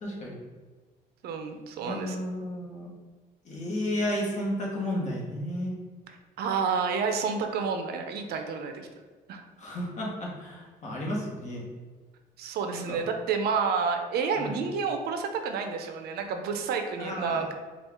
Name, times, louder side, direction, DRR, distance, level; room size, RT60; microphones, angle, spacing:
voice 1, 0.0-0.4 1.8-2.9 3.4-5.7 9.6-11.6 12.7-13.0 14.4-14.5 17.0-17.5, left 1 dB, 45° left, -2 dB, 1.2 m, -33 dB
voice 2, 1.2-2.2 6.4-8.9 9.3-9.4 12.4-17.5, right 5 dB, 70° right, 5 dB, 0.5 m, -29 dB
4.3 x 2.4 x 3.5 m, 1.4 s
cardioid pair, 110°, 17 cm